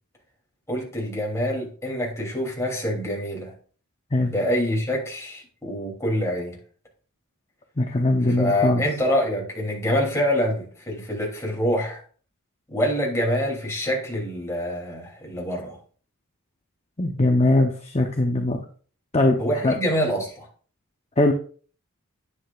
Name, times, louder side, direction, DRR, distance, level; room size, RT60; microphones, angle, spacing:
voice 1, 0.7-3.5 4.3-6.6 8.3-12.0 12.7-15.8 19.4-20.5, equal, 15° left, -2 dB, 3.1 m, -26 dB
voice 2, 7.8-8.8 17.0-18.6 19.1-19.4 19.6-19.8 21.2-21.3, left 2 dB, 30° left, 3 dB, 0.9 m, -20 dB
10.0 x 9.7 x 2.5 m, 0.42 s
head